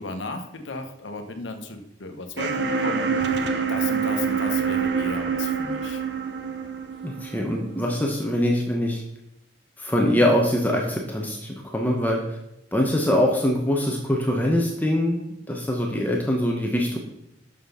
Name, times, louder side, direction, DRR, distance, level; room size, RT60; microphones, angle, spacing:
voice 1, 0.0-6.1, left 3 dB, 85° left, 6 dB, 1.1 m, -35 dB
sound 1, 2.4-8.3, right 6 dB, 70° right, 0.8 m, -26 dB
voice 2, 7.0-9.0 9.8-12.4 12.7-17.0, left 1 dB, 10° left, -1 dB, 0.8 m, -23 dB
6.5 x 5.9 x 5.6 m, 0.84 s
head